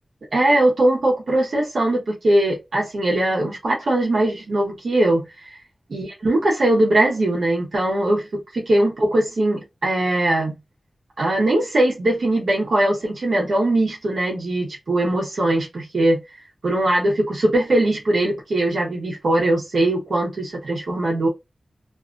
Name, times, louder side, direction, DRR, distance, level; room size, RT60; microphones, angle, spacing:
voice 1, 0.3-5.3 5.9-10.6 11.2-16.2 16.6-21.3, right 1 dB, 80° right, 1.1 m, -20 dB
2.8 x 2.5 x 2.5 m
wide cardioid pair, 100°, 0 cm